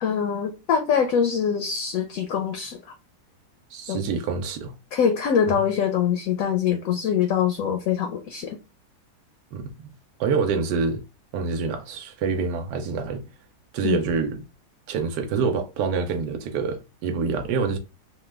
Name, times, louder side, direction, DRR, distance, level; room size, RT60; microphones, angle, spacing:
voice 1, 0.0-2.8 3.9-4.0 4.9-8.6 13.8-14.0, left 7 dB, 70° left, 0.9 m, -23 dB
voice 2, 3.7-4.7 5.5-5.6 9.5-9.9 10.2-11.0 11.3-13.2 13.7-14.4 14.9-17.8, right 5 dB, 85° right, 1.2 m, -26 dB
3.2 x 2.2 x 3.2 m
omnidirectional pair, 1.8 m